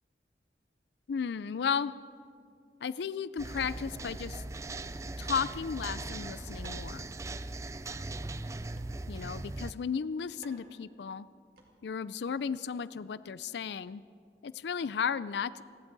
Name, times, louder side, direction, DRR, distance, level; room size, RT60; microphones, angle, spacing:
voice 1, 1.1-1.9 2.8-4.4 5.2-7.1 9.1-11.3 11.8-14.0 14.4-15.6, left 6 dB, 75° left, 17 dB, 0.4 m, -34 dB
sound 1, 3.4-9.7, right 2 dB, 15° right, 0.3 m, -39 dB
sound 2, 3.5-12.1, right 1 dB, 50° right, 2.2 m, -62 dB
29.0 x 11.5 x 4.0 m, 2.2 s
head